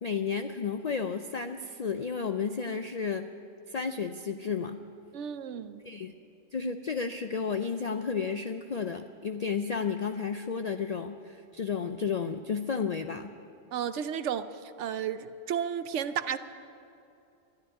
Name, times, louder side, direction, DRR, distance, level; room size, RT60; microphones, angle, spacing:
voice 1, 0.0-3.3 3.7-4.8 5.8-6.1 6.5-13.3, left 5 dB, 65° left, 8 dB, 0.4 m, -32 dB
voice 2, 5.1-5.8 13.7-14.5 14.8-16.4, right 8 dB, 75° right, 12 dB, 0.9 m, -32 dB
12.5 x 11.0 x 10.0 m, 2.6 s
omnidirectional pair, 1.3 m